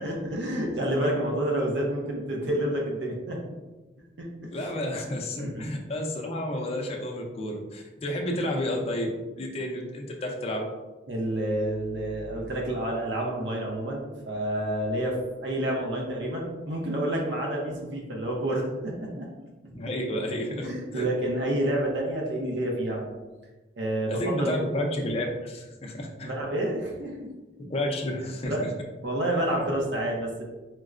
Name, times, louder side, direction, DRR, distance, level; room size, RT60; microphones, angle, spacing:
voice 1, 0.0-3.4 4.2-4.5 5.4-5.7 11.1-19.3 19.6-19.9 20.6-23.1 23.8-24.6 26.2-27.3 28.4-28.7 29.0-30.4, right 1 dB, 70° right, -1 dB, 0.6 m, -29 dB
voice 2, 4.5-9.1 9.3-10.7 19.7-21.1 24.1-26.3 27.7-28.7, left 1 dB, 35° left, 1 dB, 0.4 m, -31 dB
4.5 x 2.0 x 2.4 m, 1.2 s
head